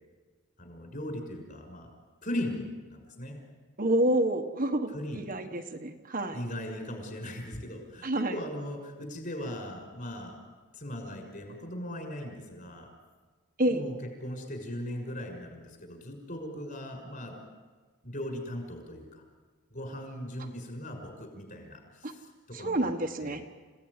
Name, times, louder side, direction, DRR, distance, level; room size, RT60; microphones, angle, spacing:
voice 1, 0.6-1.9 2.2-3.4 4.9-5.3 6.3-10.4 10.7-12.9 13.7-17.3 18.0-19.2 19.7-22.9 23.2-23.4, left 1 dB, 40° left, 3 dB, 6.0 m, -38 dB
voice 2, 3.8-6.4 8.0-8.4 13.6-13.8 22.0-22.1 22.5-23.4, right 1 dB, 40° right, 4 dB, 1.4 m, -28 dB
29.5 x 17.5 x 9.8 m, 1.4 s
head